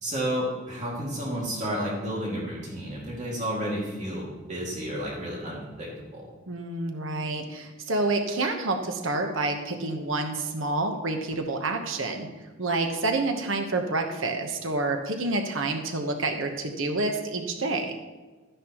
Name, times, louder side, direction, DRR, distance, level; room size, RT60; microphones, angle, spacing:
voice 1, 0.0-6.3, equal, 35° right, -4 dB, 2.3 m, -31 dB
voice 2, 6.5-12.3 12.6-18.0, right 2 dB, 75° right, 4 dB, 1.1 m, -28 dB
13.0 x 10.0 x 3.0 m, 1.3 s
head